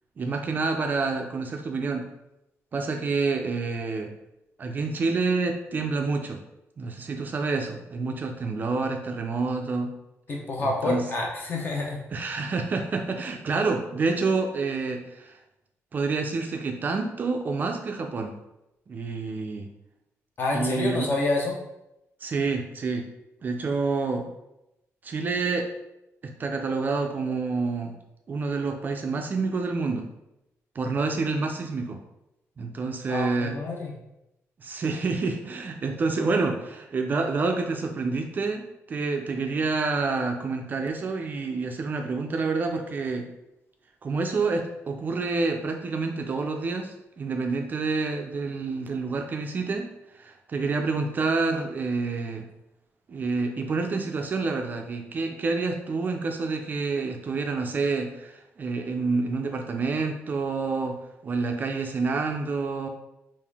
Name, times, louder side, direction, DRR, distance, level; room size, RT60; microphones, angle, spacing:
voice 1, 0.2-2.1 2.7-4.1 4.6-6.4 6.8-9.9 10.6-11.0 12.1-15.4 15.9-18.3 18.9-19.7 20.5-21.1 22.2-23.1 23.4-24.3 25.0-25.7 26.2-28.0 28.3-30.1 30.8-32.0 32.6-33.6 34.6-43.3 44.0-49.9 50.1-52.4 53.1-62.9, right 4 dB, 35° right, 4 dB, 0.3 m, -28 dB
voice 2, 10.3-12.0 20.4-21.6 33.1-33.9, left 2 dB, 40° left, -1 dB, 0.8 m, -28 dB
3.6 x 2.5 x 3.4 m, 0.88 s
wide cardioid pair, 165°, 5 cm